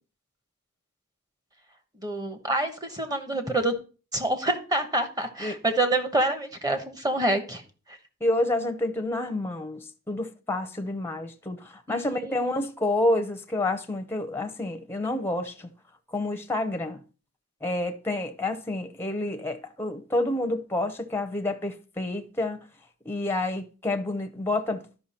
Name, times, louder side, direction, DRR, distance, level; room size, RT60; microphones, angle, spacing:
voice 1, 2.0-3.7 4.1-7.6 11.9-12.6, right 2 dB, 15° right, 1.1 m, -27 dB
voice 2, 8.2-15.7 16.1-17.0 17.6-22.7 23.0-24.8, left 2 dB, 10° left, 0.7 m, -29 dB
12.0 x 5.6 x 4.3 m
head